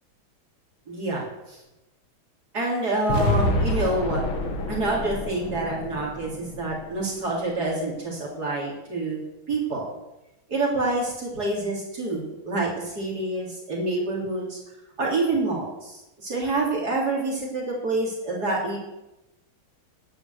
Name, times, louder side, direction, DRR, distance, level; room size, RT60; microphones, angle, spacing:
voice 1, 0.9-1.6 2.5-4.2 4.7-9.2 9.5-9.9 10.5-14.6 15.0-18.8, right 2 dB, 50° right, -4 dB, 4.0 m, -27 dB
sound 1, 3.1-7.2, left 1 dB, 75° left, 2.4 m, -28 dB
10.5 x 9.7 x 8.0 m, 0.96 s
omnidirectional pair, 2.2 m